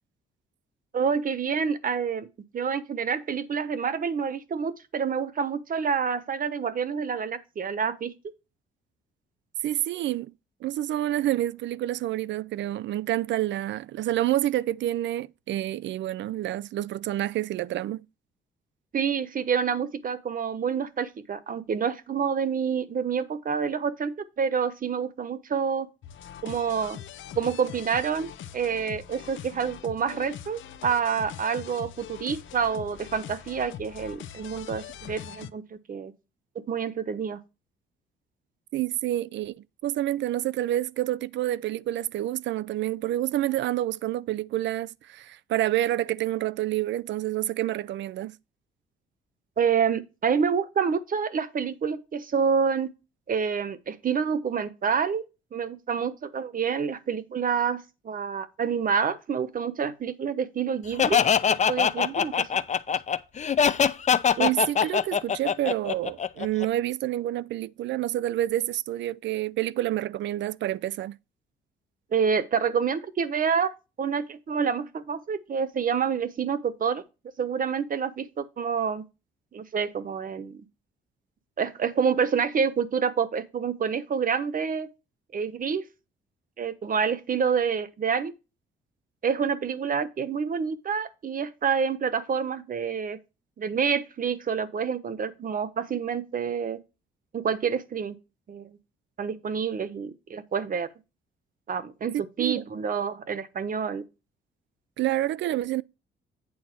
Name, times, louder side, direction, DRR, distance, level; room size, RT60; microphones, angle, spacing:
voice 1, 0.9-2.3 2.5-8.1 18.9-25.9 26.4-27.0 27.4-36.1 36.7-37.4 49.6-52.9 53.3-55.2 55.5-61.2 61.5-62.6 72.1-73.7 74.0-77.0 77.4-79.1 79.5-80.7 81.6-84.9 85.3-85.8 86.6-88.3 89.2-93.2 93.6-96.8 97.3-98.2 98.5-98.8 99.2-100.9 101.7-104.1, right 6 dB, 45° right, 1.1 m, -28 dB
voice 2, 9.6-10.3 10.6-18.0 38.7-39.6 39.8-48.4 64.4-71.2 102.1-102.6 105.0-105.8, right 14 dB, 65° right, 0.4 m, -28 dB
sound 1, 26.0-35.5, left 10 dB, 75° left, 0.7 m, -42 dB
Laughter, 61.0-66.6, left 7 dB, 35° left, 0.6 m, -23 dB
8.8 x 4.1 x 6.0 m
cardioid pair, 90°, 20 cm